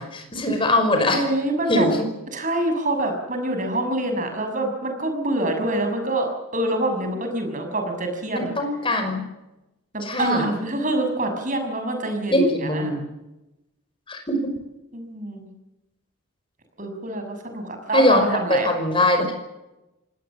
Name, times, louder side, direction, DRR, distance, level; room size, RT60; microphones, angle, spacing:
voice 1, 0.0-1.2 1.7-2.1 8.6-9.2 10.0-10.4 12.3-13.0 14.1-14.4 17.9-18.2 18.5-19.3, left 1 dB, 25° left, 5 dB, 5.5 m, -21 dB
voice 2, 1.1-1.9 2.3-8.6 9.9-12.9 14.9-15.5 16.8-18.7, right 1 dB, 35° right, 5 dB, 6.2 m, -26 dB
26.5 x 19.5 x 7.4 m, 0.98 s
head